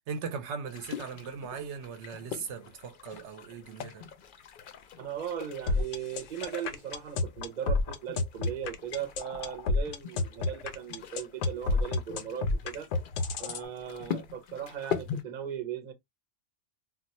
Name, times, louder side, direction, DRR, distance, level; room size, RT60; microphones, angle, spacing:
voice 1, 0.1-4.1, right 6 dB, 75° right, 0.9 m, -39 dB
sound 1, 0.7-15.2, left 7 dB, 60° left, 0.6 m, -43 dB
voice 2, 5.0-12.9 13.4-15.9, right 9 dB, 45° right, 0.7 m, -38 dB
sound 2, 5.7-13.6, left 3 dB, 90° left, 0.9 m, -29 dB
2.3 x 2.3 x 4.0 m
omnidirectional pair, 1.2 m